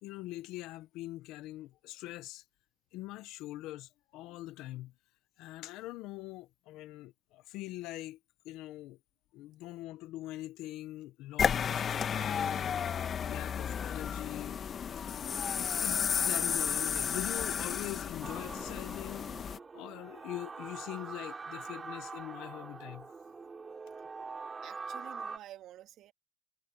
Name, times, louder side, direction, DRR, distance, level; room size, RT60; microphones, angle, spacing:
voice 1, 0.0-2.4 2.9-4.9 5.4-8.2 8.4-9.0 9.3-12.8 13.3-14.6 15.0-15.3 15.5-19.3 19.7-23.2, left 16 dB, 75° left, 1.2 m, -43 dB
sound 1, 11.4-19.6, left 7 dB, 45° left, 2.0 m, -33 dB
sound 2, 18.2-25.4, right 4 dB, 30° right, 6.9 m, -44 dB
voice 2, 24.6-26.1, right 12 dB, 65° right, 3.4 m, -50 dB
supercardioid pair, 70°, 0 cm